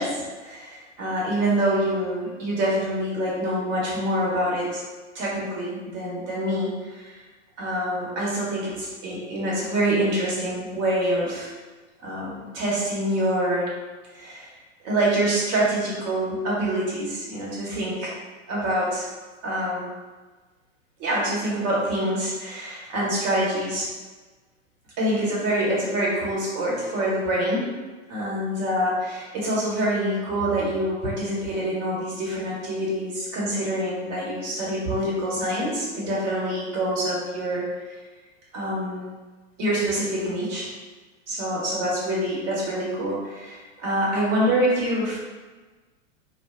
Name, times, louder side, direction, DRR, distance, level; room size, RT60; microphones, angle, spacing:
voice 1, 0.0-4.8 5.1-7.2 7.6-11.5 12.0-13.7 14.1-14.5 14.8-18.1 18.5-19.0 19.4-19.9 21.0-23.9 25.0-27.7 28.1-37.7 38.5-39.0 39.6-40.7 41.3-45.3, right 1 dB, 40° right, -5 dB, 1.1 m, -26 dB
2.3 x 2.2 x 3.6 m, 1.3 s
figure-of-eight pair, 105°, 37 cm